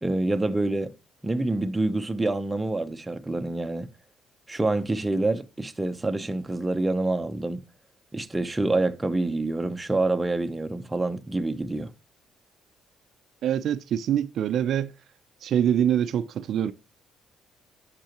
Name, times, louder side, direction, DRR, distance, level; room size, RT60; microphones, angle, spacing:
voice 1, 0.0-0.9 1.2-3.9 4.5-7.6 8.1-11.9, right 2 dB, 10° right, 0.8 m, -27 dB
voice 2, 13.4-14.9 15.4-16.7, right 9 dB, 60° right, 0.5 m, -24 dB
10.0 x 6.8 x 3.0 m
cardioid pair, 120°, 0 cm